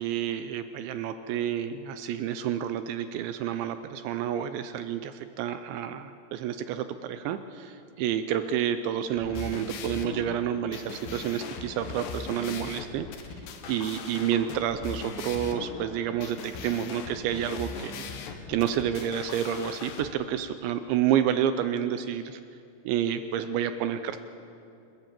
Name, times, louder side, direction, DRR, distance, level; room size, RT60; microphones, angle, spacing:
voice 1, 0.0-13.1 13.7-18.1 18.5-22.4 22.8-24.2, right 10 dB, 85° right, 10 dB, 2.6 m, -29 dB
sound 1, 9.1-20.1, left 5 dB, 70° left, 3.1 m, -39 dB
28.0 x 13.5 x 7.5 m, 2.6 s
omnidirectional pair, 5.8 m